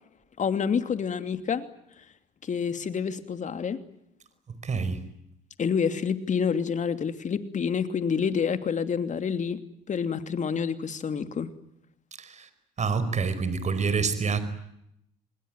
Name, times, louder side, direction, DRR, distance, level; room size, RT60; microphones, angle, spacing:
voice 1, 0.4-1.7 2.4-3.8 5.6-9.6 9.9-11.5, left 6 dB, 45° left, 10 dB, 2.8 m, -28 dB
voice 2, 4.5-5.0 12.2-12.5 12.8-14.4, right 5 dB, 40° right, 13 dB, 5.1 m, -27 dB
27.0 x 21.5 x 9.1 m, 0.78 s
supercardioid pair, 70°, 18 cm